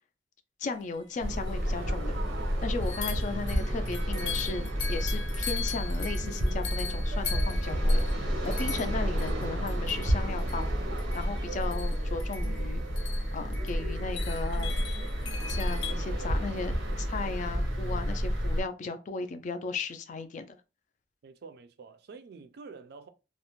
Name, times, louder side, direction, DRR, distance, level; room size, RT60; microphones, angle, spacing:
voice 1, 0.6-2.2 2.6-10.7 11.1-12.8 13.3-14.8 15.5-20.6, left 4 dB, 45° left, 0.3 m, -36 dB
sound 1, 1.1-1.2 1.5-1.6 2.8-15.9, left 6 dB, 85° left, 0.6 m, -41 dB
sound 2, 1.2-18.6, equal, 90° right, 0.7 m, -30 dB
voice 2, 21.2-23.1, right 4 dB, 60° right, 0.3 m, -48 dB
2.4 x 2.0 x 2.9 m
head